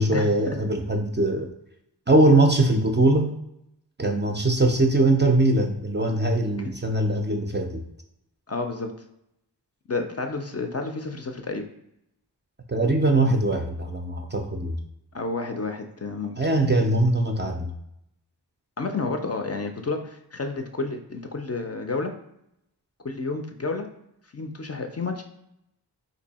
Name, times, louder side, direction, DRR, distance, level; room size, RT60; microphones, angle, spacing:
voice 1, 0.0-1.5 2.1-3.3 4.0-7.8 12.7-14.8 16.4-17.7, right 2 dB, 30° right, 3 dB, 0.4 m, -21 dB
voice 2, 8.5-8.9 9.9-11.6 15.1-16.4 18.8-22.1 23.0-23.9 24.3-25.2, left 3 dB, 40° left, 5 dB, 0.4 m, -30 dB
2.7 x 2.6 x 4.0 m, 0.80 s
wide cardioid pair, 50°, 43 cm